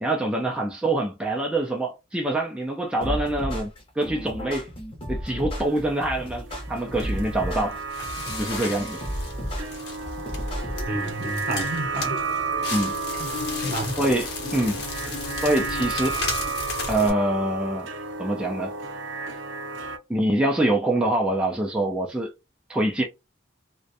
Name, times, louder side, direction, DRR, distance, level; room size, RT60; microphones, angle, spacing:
voice 1, 0.0-3.7 4.0-4.7 5.1-7.8 8.4-9.0 12.7-12.9 14.0-14.8 15.4-16.2 16.9-17.9 18.2-18.7 20.1-22.3 22.7-23.0, right 1 dB, 5° right, 0.3 m, -25 dB
sound 1, 3.0-11.0, equal, 30° left, 0.7 m, -33 dB
sound 2, 5.5-20.0, right 4 dB, 85° right, 0.5 m, -33 dB
Crackle, 6.9-17.1, left 3 dB, 60° left, 0.8 m, -34 dB
voice 2, 10.8-12.2 13.2-13.3 13.6-14.0, right 2 dB, 50° right, 0.7 m, -30 dB
2.4 x 2.1 x 2.6 m
head